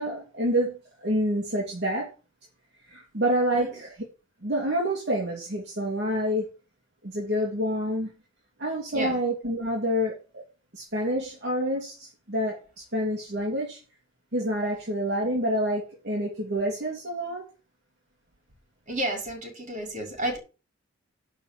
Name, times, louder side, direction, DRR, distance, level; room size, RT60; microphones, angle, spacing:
voice 1, 0.0-2.1 2.9-3.9 4.4-6.5 7.0-8.1 8.6-10.4 10.7-12.6 12.9-13.8 14.3-17.4, equal, 55° right, -2 dB, 3.1 m, -28 dB
voice 2, 18.9-20.4, right 1 dB, 40° right, 2 dB, 5.5 m, -31 dB
11.5 x 5.0 x 7.5 m, 0.32 s
head